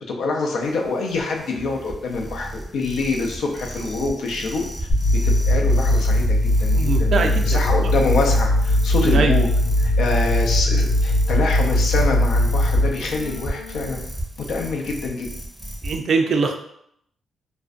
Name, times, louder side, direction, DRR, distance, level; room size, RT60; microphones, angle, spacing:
voice 1, 0.1-4.6 5.2-9.5 9.8-14.0 14.5-15.3, left 3 dB, 80° left, 0 dB, 0.5 m, -25 dB
sound 1, 0.6-16.0, right 1 dB, 10° right, 0.6 m, -33 dB
sound 2, 4.9-13.9, left 1 dB, 50° left, 0.8 m, -19 dB
voice 2, 6.7-7.7 9.0-9.4 15.8-16.6, right 4 dB, 65° right, 4 dB, 0.3 m, -22 dB
2.5 x 2.1 x 2.4 m, 0.72 s
cardioid pair, 90°, 0 cm